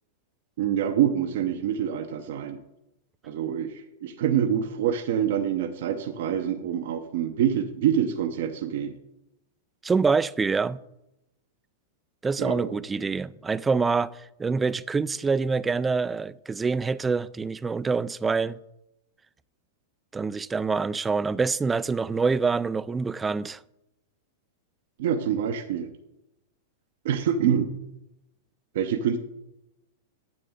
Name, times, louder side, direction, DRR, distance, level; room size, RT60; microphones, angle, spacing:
voice 1, 0.6-2.6 3.2-9.0 12.4-12.7 25.0-25.9 27.0-27.7 28.7-29.2, right 9 dB, 65° right, 0.7 m, -26 dB
voice 2, 9.8-10.8 12.2-18.6 20.1-23.6, right 4 dB, 15° right, 0.3 m, -26 dB
9.6 x 7.6 x 3.7 m
hypercardioid pair, 110°, 0 cm